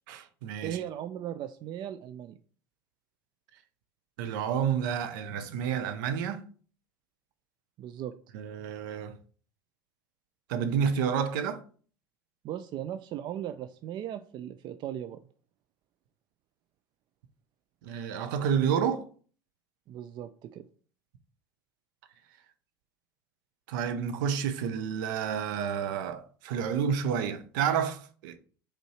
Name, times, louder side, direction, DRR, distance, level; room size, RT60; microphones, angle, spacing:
voice 1, 0.1-0.8 4.2-6.4 8.3-9.1 10.5-11.6 17.8-19.1 23.7-28.4, right 7 dB, 65° right, 0.8 m, -30 dB
voice 2, 0.6-2.4 7.8-8.1 12.4-15.3 19.9-20.6, right 11 dB, 45° right, 0.5 m, -37 dB
5.4 x 4.3 x 4.4 m
figure-of-eight pair, 70°, 11 cm